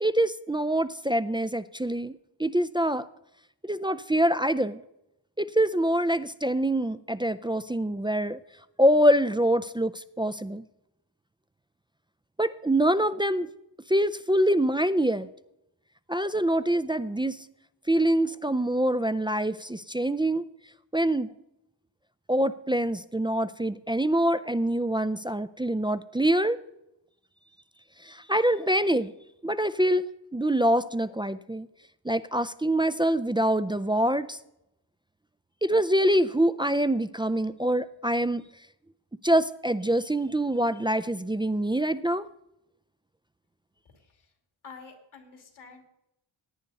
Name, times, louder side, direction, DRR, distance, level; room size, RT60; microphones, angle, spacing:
voice 1, 0.0-3.1 3.6-4.8 5.4-8.4 8.8-10.6 12.4-13.5 13.9-15.3 16.1-17.4 17.9-20.5 20.9-21.3 22.3-26.6 28.0-29.1 29.4-31.7 32.0-34.4 35.6-38.4 39.2-42.3, right 1 dB, 10° right, 12 dB, 0.4 m, -25 dB
voice 2, 43.9-44.3 44.6-45.8, left 5 dB, 85° left, 4 dB, 2.6 m, -48 dB
17.5 x 9.2 x 4.1 m, 0.85 s
cardioid pair, 75°, 47 cm